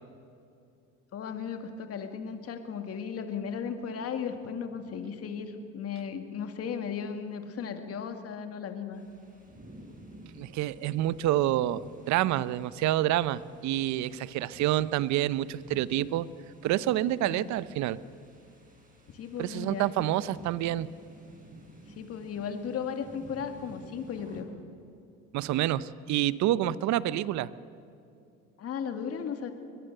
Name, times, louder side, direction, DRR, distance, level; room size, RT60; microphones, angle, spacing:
voice 1, 1.1-9.0 17.2-17.5 19.1-20.5 22.0-24.5 28.6-29.5, left 7 dB, 50° left, 6 dB, 2.2 m, -36 dB
sound 1, 8.9-24.4, right 1 dB, 25° right, 6.8 m, -53 dB
voice 2, 10.4-16.3 16.6-18.0 19.4-20.9 25.3-27.5, right 13 dB, 70° right, 17 dB, 0.8 m, -28 dB
23.0 x 20.5 x 6.8 m, 2.7 s
supercardioid pair, 95°, 30 cm